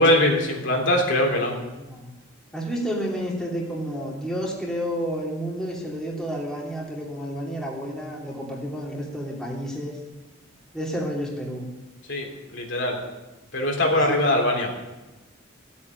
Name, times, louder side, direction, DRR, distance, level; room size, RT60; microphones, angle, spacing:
voice 1, 0.0-1.5 12.1-12.3 12.5-13.0 13.5-14.7, left 1 dB, 60° left, 0 dB, 3.4 m, -21 dB
voice 2, 1.7-2.1 2.5-10.0 10.7-11.6 13.9-14.2, equal, 5° left, -4 dB, 2.9 m, -30 dB
16.5 x 8.6 x 9.6 m, 1.1 s
head